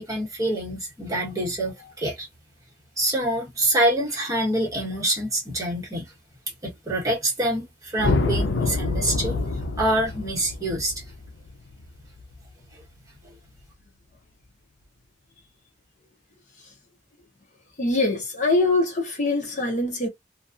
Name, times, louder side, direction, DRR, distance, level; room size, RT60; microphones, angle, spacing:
voice 1, 0.0-2.3 3.0-6.1 6.6-9.4 9.8-11.0, right 1 dB, 20° right, 1.2 m, -26 dB
sound 1, 8.0-12.4, left 3 dB, 80° left, 0.5 m, -26 dB
voice 2, 17.8-20.1, left 2 dB, 40° left, 0.7 m, -23 dB
2.6 x 2.3 x 2.5 m
head